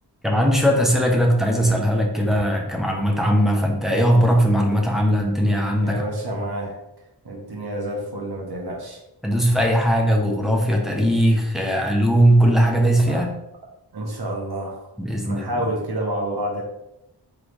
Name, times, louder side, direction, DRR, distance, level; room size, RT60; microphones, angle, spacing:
voice 1, 0.2-6.1 9.2-13.3 15.0-15.7, equal, ahead, 0 dB, 0.9 m, -19 dB
voice 2, 5.8-6.8 7.2-9.0 13.1-13.2 13.9-14.8 15.2-16.6, right 1 dB, 65° right, -2 dB, 1.2 m, -29 dB
3.8 x 3.7 x 3.4 m, 0.86 s
wide cardioid pair, 65°, 42 cm